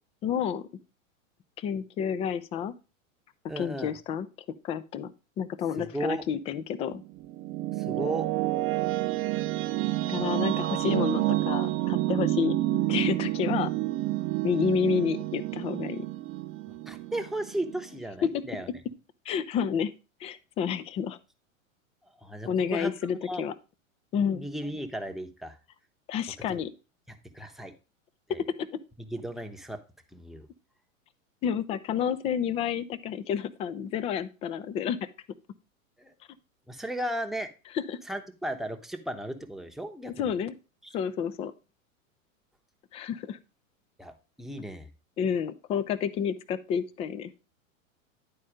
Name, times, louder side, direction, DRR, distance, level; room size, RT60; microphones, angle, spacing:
voice 1, 0.2-0.6 1.6-2.7 3.6-4.3 4.6-7.0 10.1-12.6 12.9-13.7 14.4-16.1 18.2-18.6 19.3-19.9 20.2-21.2 22.5-23.5 24.1-24.5 26.1-26.7 28.6-28.7 31.4-35.0 37.7-38.0 40.2-40.5 40.9-41.5 42.9-43.4 45.2-47.3, left 7 dB, 15° left, 15 dB, 0.3 m, -30 dB
voice 2, 3.5-3.9 5.8-6.3 7.8-8.3 16.7-18.7 22.2-22.9 23.2-23.4 24.3-25.6 27.1-27.7 28.3-28.4 29.0-29.8 30.1-30.5 36.0-36.1 36.7-37.5 38.1-40.3 40.8-40.9 44.0-44.1 44.4-44.9, right 1 dB, ahead, 4 dB, 0.8 m, -35 dB
sound 1, 6.9-18.0, right 16 dB, 35° right, 0.7 m, -29 dB
10.0 x 4.2 x 4.9 m, 0.31 s
hypercardioid pair, 100°, 41 cm